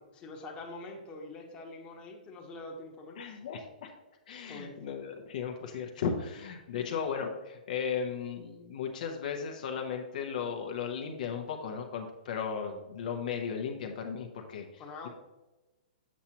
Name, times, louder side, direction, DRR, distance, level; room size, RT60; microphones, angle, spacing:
voice 1, 0.1-3.4 4.5-4.8 6.8-6.9 14.8-15.1, left 2 dB, 20° left, 0 dB, 1.1 m, -45 dB
voice 2, 3.2-3.9 4.3-15.1, left 6 dB, 60° left, 3 dB, 0.9 m, -36 dB
7.4 x 5.8 x 2.9 m, 1.1 s
hypercardioid pair, 140°, 5 cm